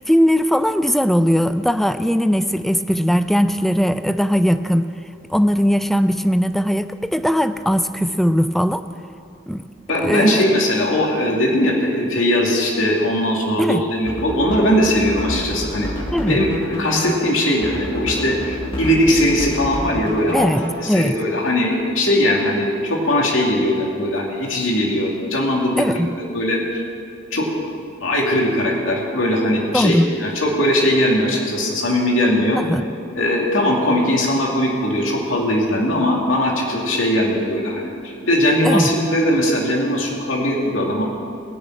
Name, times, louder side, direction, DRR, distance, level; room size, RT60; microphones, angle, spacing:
voice 1, 0.0-4.9 5.3-8.8 9.5-9.7 10.0-10.5 13.6-13.8 16.1-16.4 20.3-21.2 25.8-26.1 29.7-30.1 32.5-32.9 38.6-38.9, equal, ahead, 11 dB, 0.4 m, -19 dB
voice 2, 9.9-15.9 16.2-16.5 16.8-20.5 20.8-25.8 26.2-26.8 27.3-27.7 28.0-32.6 33.2-41.0, left 1 dB, 85° left, -2 dB, 2.6 m, -19 dB
sound 1, 14.0-21.1, equal, 30° left, 1.9 m, -29 dB
19.5 x 6.5 x 8.6 m, 2.5 s
head